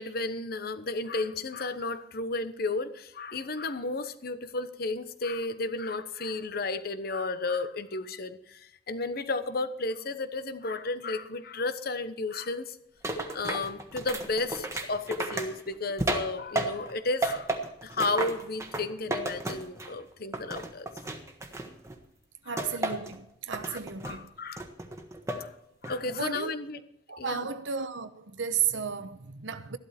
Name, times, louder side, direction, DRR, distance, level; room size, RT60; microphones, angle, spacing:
voice 1, 0.0-12.8 13.3-17.5 17.8-20.9 22.5-22.6 23.6-23.8 24.0-24.6 25.4-25.5 25.8-26.8 27.2-27.5, left 3 dB, 55° left, 1.0 m, -33 dB
sound 1, 13.0-16.9 17.2-20.0 20.3-22.0 22.6-23.2 23.5-24.2 24.6-25.5 25.8-26.3, right 2 dB, 15° right, 1.4 m, -33 dB
voice 2, 22.4-24.3 26.1-26.5 27.1-29.8, right 7 dB, 85° right, 1.0 m, -33 dB
14.0 x 12.0 x 4.3 m
head